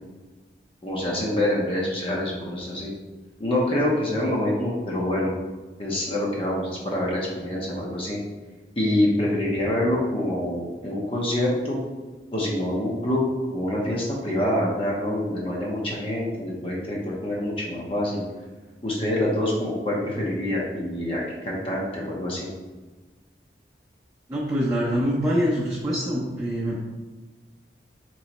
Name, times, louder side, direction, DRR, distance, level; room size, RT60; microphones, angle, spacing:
voice 1, 0.8-2.9 3.4-5.3 5.8-8.2 8.8-11.8 12.3-13.2 13.5-18.2 18.8-22.5, left 1 dB, 30° left, -4 dB, 0.7 m, -26 dB
voice 2, 24.3-26.8, equal, 20° right, -7 dB, 0.6 m, -24 dB
3.4 x 3.1 x 4.0 m, 1.2 s
head